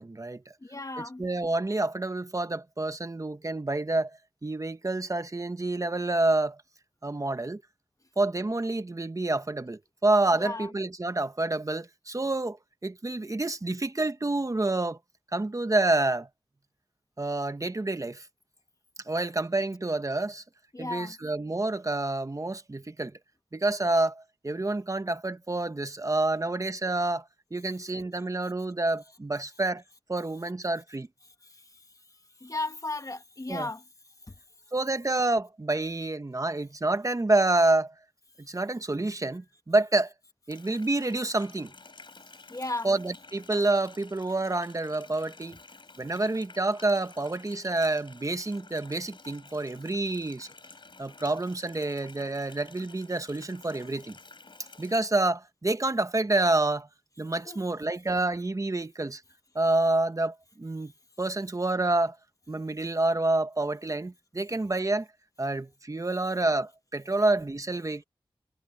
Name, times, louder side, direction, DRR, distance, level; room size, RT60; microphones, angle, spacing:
voice 1, 0.0-0.5 1.2-6.6 7.0-7.6 8.2-12.6 12.8-15.0 15.3-16.3 17.2-18.3 19.1-20.4 20.8-23.1 23.5-27.2 27.5-29.8 30.1-31.1 33.5-33.7 34.7-37.9 38.4-40.1 40.5-41.7 42.8-45.6 46.0-50.5 51.0-54.2 54.8-56.9 57.2-59.2 59.5-60.9 61.2-62.2 62.5-65.1 65.4-68.0, right 2 dB, 35° right, 1.2 m, -28 dB
voice 2, 0.6-1.3 10.4-10.7 20.7-21.2 31.4-31.8 32.4-33.8 34.3-34.4 42.4-43.0 57.5-57.6, left 2 dB, 35° left, 1.8 m, -35 dB
Water tap faucet, 40.5-55.0, left 3 dB, 60° left, 5.7 m, -51 dB
cardioid pair, 45°, 9 cm